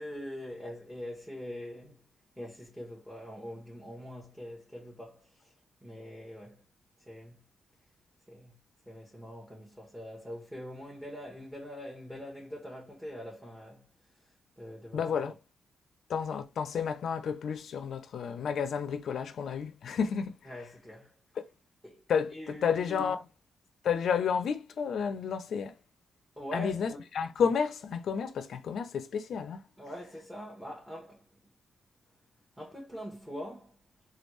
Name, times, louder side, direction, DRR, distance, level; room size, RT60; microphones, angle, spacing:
voice 1, 0.0-2.1 2.4-5.5 5.8-6.6 7.0-7.4 8.3-8.6 8.9-13.9 14.6-15.1 20.5-21.1 21.8-22.0 22.3-23.0 26.4-27.0 29.8-31.2 32.6-33.8, equal, 5° right, 1.1 m, -43 dB
voice 2, 14.9-15.3 16.1-20.5 22.1-23.2 23.8-25.7 26.5-29.6, left 6 dB, 70° left, 0.5 m, -31 dB
3.4 x 2.3 x 3.0 m
cardioid pair, 70°, 0 cm